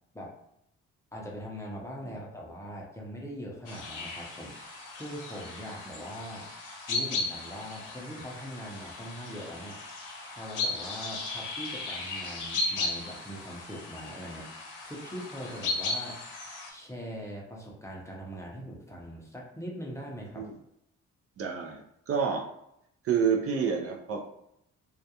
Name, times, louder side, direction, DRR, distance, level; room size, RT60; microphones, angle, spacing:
voice 1, 1.1-6.5 6.9-9.8 10.2-16.3 16.7-20.5, equal, 10° left, -2 dB, 0.5 m, -41 dB
sound 1, 3.6-16.7, left 3 dB, 85° left, 0.7 m, -36 dB
voice 2, 21.4-21.8 22.1-22.4 23.0-24.2, right 6 dB, 50° right, 1 dB, 0.4 m, -28 dB
2.3 x 2.1 x 2.8 m, 0.76 s
cardioid pair, 90°, 30 cm